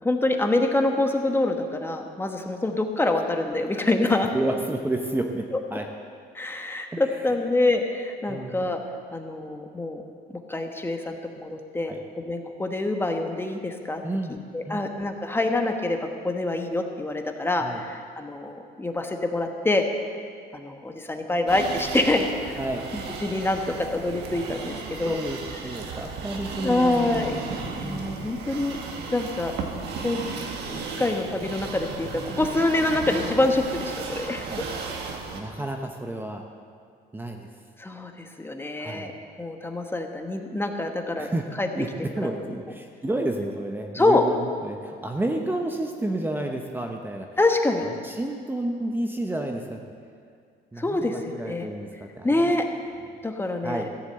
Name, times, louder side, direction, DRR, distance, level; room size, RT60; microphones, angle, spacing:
voice 1, 0.0-4.3 6.3-8.8 9.1-10.0 10.5-14.0 14.3-19.9 20.5-22.6 22.9-25.2 26.6-27.4 27.8-28.8 29.1-29.5 30.0-34.5 37.8-39.1 39.4-41.3 41.6-41.7 42.2-42.3 43.9-44.2 47.4-47.9 50.8-51.7 52.2-52.6 53.2-53.9, left 2 dB, 15° left, 4 dB, 1.2 m, -26 dB
voice 2, 4.3-5.4 5.7-5.9 6.9-7.2 8.3-8.6 11.9-12.0 14.0-14.4 14.6-14.9 17.6-17.8 22.6-22.8 25.0-25.4 25.6-27.5 27.8-28.3 34.5-34.6 35.3-36.4 37.1-37.5 38.8-39.1 41.2-41.4 41.7-41.9 42.2-47.3 48.0-49.8 50.7-52.5 53.6-53.9, right 1 dB, 10° right, 3 dB, 0.9 m, -30 dB
sound 1, 21.5-35.4, right 4 dB, 80° right, 1.6 m, -35 dB
15.0 x 7.3 x 7.6 m, 2.2 s
cardioid pair, 110°, 17 cm